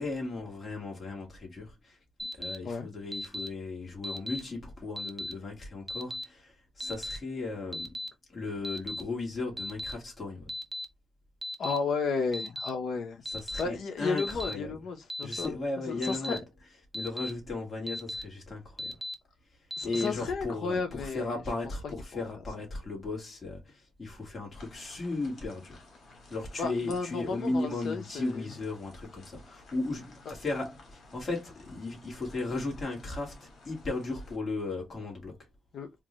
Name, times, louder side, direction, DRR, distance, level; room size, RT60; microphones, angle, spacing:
voice 1, 0.0-2.0 2.3-8.0 8.3-10.5 13.2-14.7 15.2-16.4 16.9-19.0 19.8-25.9 26.3-35.5, left 3 dB, 35° left, 2.2 m, -36 dB
Alarm, 2.2-2.6 3.1-3.5 4.0-4.4 5.0-5.3 5.9-6.2 6.8-7.2 7.7-8.1 8.6-9.0 9.6-9.9 10.5-10.8 11.4-11.8 12.3-12.7 13.3-13.6 14.2-14.5 15.1-15.5 16.0-16.4 16.9-17.3 17.9-18.2 18.8-19.1 19.7-20.1, left 1 dB, 10° right, 0.7 m, -36 dB
voice 2, 11.6-13.2 13.6-15.6 15.9-16.4 19.8-21.4 22.1-22.2 26.6-28.5 30.3-30.4 35.7-35.9, left 4 dB, 80° left, 0.9 m, -33 dB
sound 1, 24.5-34.4, left 2 dB, 65° left, 1.6 m, -55 dB
3.6 x 2.7 x 3.1 m
cardioid pair, 95°, 0 cm